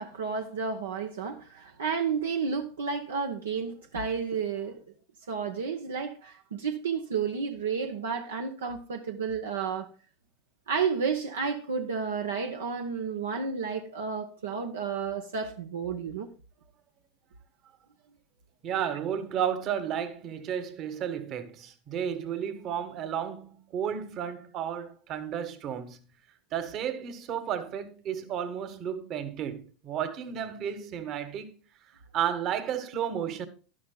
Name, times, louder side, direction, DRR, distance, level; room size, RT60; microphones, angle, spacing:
voice 1, 0.0-4.8 5.3-9.9 10.7-16.3, right 6 dB, 80° right, 0.8 m, -31 dB
voice 2, 18.6-26.0 26.5-31.5 32.1-33.5, right 9 dB, 45° right, 1.3 m, -32 dB
11.5 x 11.5 x 2.3 m
hypercardioid pair, 85°, 0 cm